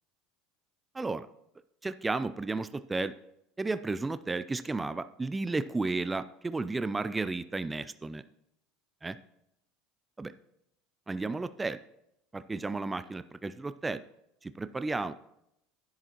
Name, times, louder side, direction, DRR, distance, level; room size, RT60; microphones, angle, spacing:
voice 1, 0.9-1.3 1.8-3.1 3.6-8.2 9.0-9.2 10.2-10.3 11.1-11.8 12.3-14.0 14.4-15.1, right 3 dB, 15° right, 13 dB, 0.4 m, -33 dB
11.0 x 9.9 x 3.0 m, 0.82 s
hypercardioid pair, 75°, 0 cm